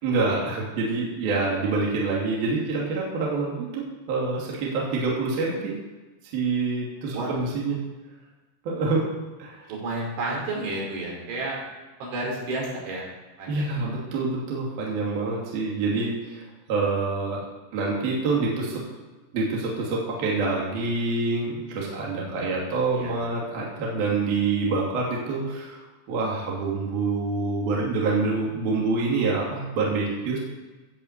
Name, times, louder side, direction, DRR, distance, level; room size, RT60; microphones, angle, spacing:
voice 1, 0.0-5.8 6.3-7.8 8.7-9.1 9.4-9.7 13.5-16.4 16.7-17.4 17.7-18.8 19.3-25.8 26.1-30.4, right 3 dB, 55° right, -3 dB, 4.2 m, -26 dB
voice 2, 9.7-11.6 12.0-13.0 13.4-13.9 21.9-22.5 22.9-23.2, right 2 dB, 80° right, -3 dB, 6.8 m, -31 dB
17.5 x 6.6 x 8.1 m, 1.2 s
omnidirectional pair, 5.4 m